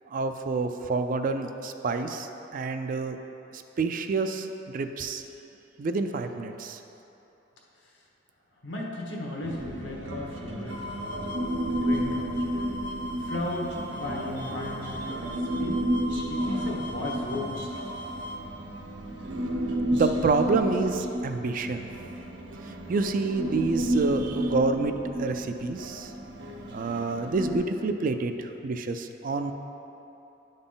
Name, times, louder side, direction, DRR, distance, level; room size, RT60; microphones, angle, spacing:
voice 1, 0.1-3.2 3.5-5.2 5.8-6.8 19.9-21.9 22.9-26.1 26.7-29.5, right 3 dB, 50° right, 7 dB, 0.4 m, -28 dB
voice 2, 8.6-11.3 11.7-12.3 13.2-15.9 16.3-17.6, left 1 dB, 75° left, -2 dB, 1.2 m, -35 dB
Human voice, 9.4-27.6, equal, 80° right, 0.8 m, -32 dB
sound 1, 10.7-18.4, equal, 50° left, 0.5 m, -39 dB
10.5 x 4.0 x 3.8 m, 3.0 s
head